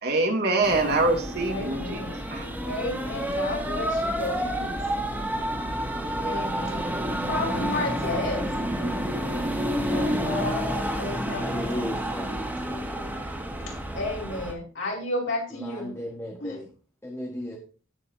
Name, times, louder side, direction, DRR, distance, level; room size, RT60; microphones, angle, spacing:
voice 1, 0.0-2.0 2.3-2.5, right 2 dB, 50° right, 1 dB, 2.4 m, -24 dB
sound 1, 0.6-14.5, equal, 10° right, 2.0 m, -29 dB
voice 2, 1.4-2.2 2.6-5.2 5.5-5.6 6.2-6.9 7.2-8.5 9.9-11.9 13.7-15.9 16.4-16.6, left 2 dB, 65° left, -2 dB, 4.8 m, -33 dB
voice 3, 11.4-12.4 15.5-16.7 17.0-17.6, equal, 15° left, -1 dB, 1.4 m, -35 dB
16.5 x 6.7 x 2.7 m, 0.38 s
head